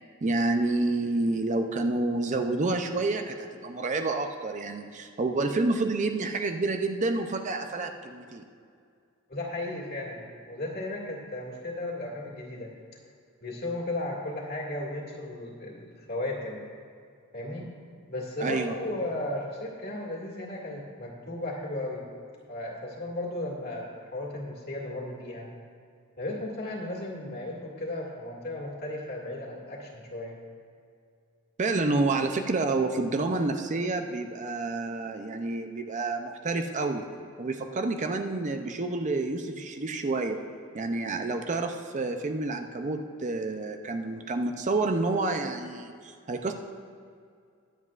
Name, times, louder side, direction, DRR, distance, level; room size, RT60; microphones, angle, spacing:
voice 1, 0.2-8.5 18.4-18.8 31.6-37.1 37.4-40.4 40.7-46.5, right 2 dB, 35° right, 6 dB, 0.5 m, -29 dB
voice 2, 9.3-12.7 13.4-16.6 17.3-17.6 18.1-22.0 22.5-25.5 26.2-30.4, left 1 dB, 45° left, -3 dB, 2.1 m, -35 dB
21.5 x 7.8 x 2.4 m, 2.3 s
head